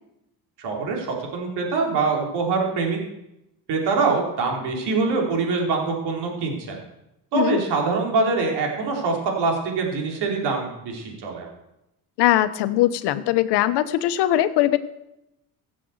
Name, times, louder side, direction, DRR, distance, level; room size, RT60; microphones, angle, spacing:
voice 1, 0.6-3.0 3.7-6.8 7.3-11.5, right 4 dB, 80° right, 0 dB, 3.8 m, -24 dB
voice 2, 12.2-14.8, left 13 dB, 90° left, 12 dB, 1.1 m, -20 dB
16.0 x 7.6 x 7.9 m, 0.89 s
cardioid pair, 90°, 40 cm